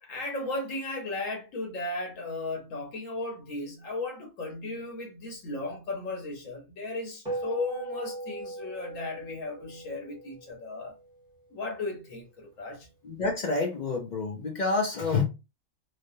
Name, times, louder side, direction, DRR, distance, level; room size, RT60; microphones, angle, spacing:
voice 1, 0.0-11.0 11.5-12.9, left 2 dB, 80° left, 1.4 m, -35 dB
sound 1, 7.3-11.9, right 2 dB, 5° right, 0.9 m, -39 dB
voice 2, 13.0-15.2, left 3 dB, 60° left, 0.5 m, -28 dB
3.2 x 2.1 x 2.6 m
omnidirectional pair, 1.3 m